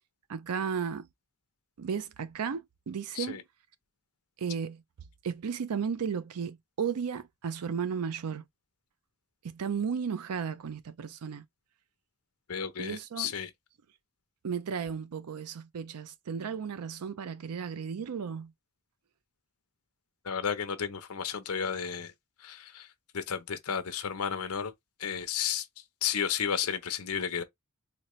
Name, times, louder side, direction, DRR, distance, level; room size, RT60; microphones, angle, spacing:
voice 1, 0.3-1.1 1.8-3.4 4.4-4.8 5.2-8.5 9.4-11.4 12.8-13.3 14.4-18.5, right 6 dB, 90° right, 0.5 m, -34 dB
voice 2, 12.5-13.5 20.2-22.1 22.4-22.9 23.1-24.7 25.0-25.7 26.0-27.4, left 7 dB, 80° left, 0.7 m, -32 dB
4.2 x 2.1 x 3.1 m
head